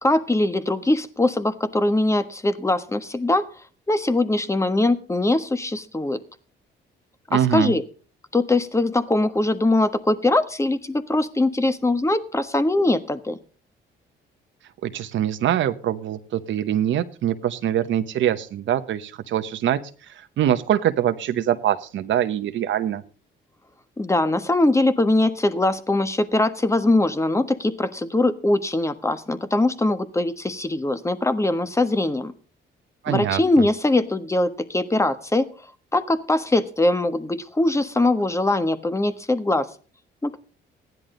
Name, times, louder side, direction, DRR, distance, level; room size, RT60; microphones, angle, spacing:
voice 1, 0.0-3.4 3.9-6.2 7.3-7.8 8.3-13.4 24.0-32.3 33.1-35.5 35.9-39.7 40.2-40.4, left 2 dB, 15° left, 11 dB, 1.4 m, -22 dB
voice 2, 7.3-7.7 14.8-19.8 20.1-23.0 33.0-33.4, right 10 dB, 70° right, 9 dB, 1.0 m, -23 dB
15.5 x 10.5 x 3.9 m, 0.40 s
cardioid pair, 90°, 20 cm